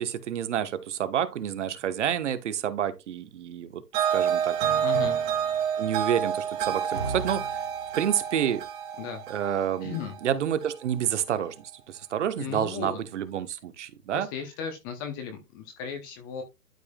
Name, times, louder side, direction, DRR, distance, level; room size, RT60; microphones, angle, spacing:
voice 1, 0.0-4.6 5.8-7.6 7.9-8.6 9.3-14.3, right 9 dB, 50° right, 1.2 m, -29 dB
sound 1, 3.9-11.1, right 8 dB, 30° right, 1.8 m, -29 dB
voice 2, 4.8-5.2 9.0-9.2 9.8-10.1 12.4-13.0 14.1-16.4, left 7 dB, 15° left, 0.7 m, -35 dB
12.0 x 4.7 x 2.3 m
hypercardioid pair, 145°, 46 cm